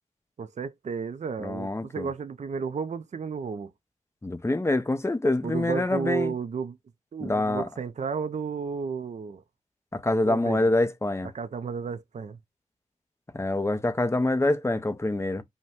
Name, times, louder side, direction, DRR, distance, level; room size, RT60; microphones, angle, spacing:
voice 1, 0.4-3.7 5.4-6.8 7.1-9.4 10.2-10.7 11.3-12.4, right 5 dB, 60° right, 0.5 m, -33 dB
voice 2, 1.4-2.1 4.2-6.3 7.2-7.7 9.9-11.3 13.3-15.4, left 2 dB, 20° left, 0.6 m, -26 dB
5.2 x 2.2 x 3.5 m
wide cardioid pair, 70°, 14 cm